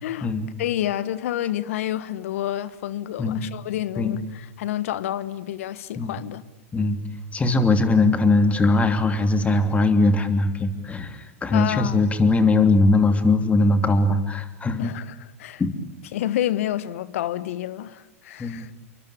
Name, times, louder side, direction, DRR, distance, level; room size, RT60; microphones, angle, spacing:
voice 1, 0.0-0.3 0.6-6.4 11.5-12.0 14.8-15.6 16.1-18.7, left 12 dB, 65° left, 1.4 m, -29 dB
voice 2, 7.3-14.9 15.6-15.7 18.4-18.7, left 2 dB, 15° left, 3.1 m, -20 dB
29.0 x 23.5 x 8.6 m
hypercardioid pair, 105°, 8 cm